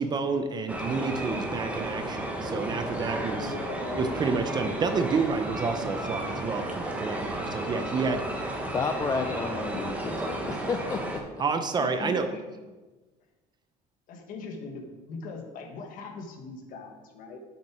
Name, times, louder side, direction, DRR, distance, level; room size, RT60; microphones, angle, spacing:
voice 1, 0.0-3.5 3.9-8.2 11.4-12.3, right 4 dB, 25° right, 8 dB, 0.6 m, -29 dB
sound 1, 0.7-11.2, right 1 dB, 10° right, 1.0 m, -33 dB
voice 2, 3.0-4.2 11.8-12.4 14.1-17.4, left 3 dB, 60° left, 3 dB, 1.4 m, -40 dB
voice 3, 8.7-11.0, left 4 dB, 20° left, 5 dB, 0.4 m, -31 dB
7.4 x 5.7 x 4.8 m, 1.2 s
cardioid pair, 140°, 16 cm